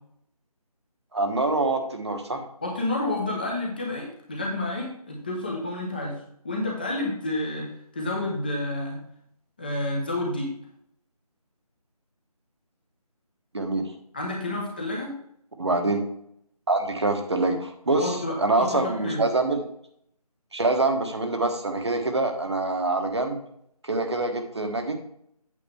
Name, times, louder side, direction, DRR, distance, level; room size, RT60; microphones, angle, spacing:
voice 1, 1.1-2.4 13.5-13.9 15.6-16.0 16.7-19.6 20.5-23.4 23.8-24.9, right 2 dB, 45° right, 5 dB, 1.2 m, -25 dB
voice 2, 2.6-9.0 9.6-10.5 14.1-15.1 18.0-19.2, left 2 dB, 15° left, -2 dB, 0.9 m, -30 dB
8.5 x 7.6 x 3.4 m, 0.69 s
figure-of-eight pair, 165°, 20 cm